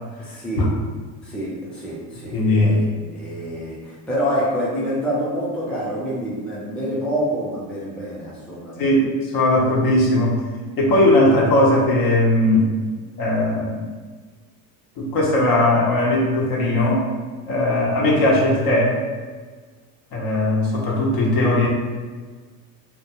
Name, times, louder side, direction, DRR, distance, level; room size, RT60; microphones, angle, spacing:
voice 1, 0.2-0.7 1.2-2.9 3.1-8.9, equal, ahead, -7 dB, 0.6 m, -27 dB
voice 2, 2.3-2.9 8.8-10.4 10.8-12.7 13.2-13.9 15.0-17.1 17.5-19.0 20.1-21.7, left 1 dB, 50° left, -3 dB, 0.8 m, -18 dB
2.2 x 2.2 x 2.9 m, 1.4 s
supercardioid pair, 95°, 46 cm